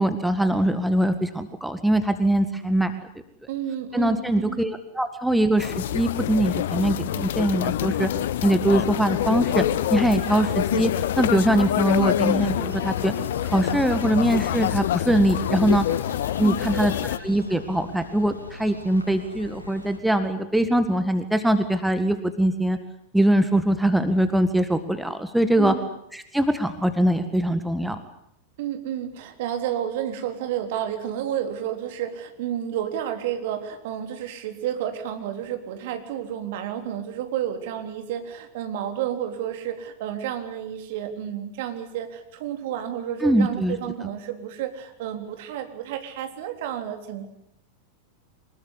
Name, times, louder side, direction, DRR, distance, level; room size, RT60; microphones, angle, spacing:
voice 1, 0.0-2.9 3.9-8.1 8.4-9.6 9.9-10.9 11.2-13.1 13.4-15.8 16.4-22.8 23.1-25.7 26.1-28.0 43.2-43.8, right 1 dB, 5° right, 9 dB, 1.8 m, -22 dB
voice 2, 3.5-4.6 16.4-16.6 25.6-25.8 28.6-47.3, right 10 dB, 50° right, 6 dB, 3.6 m, -31 dB
sound 1, 5.6-17.2, left 12 dB, 55° left, 1.0 m, -26 dB
sound 2, 9.3-20.0, left 2 dB, 80° left, 3.5 m, -42 dB
25.0 x 21.0 x 9.9 m, 0.76 s
figure-of-eight pair, 90°, 0 cm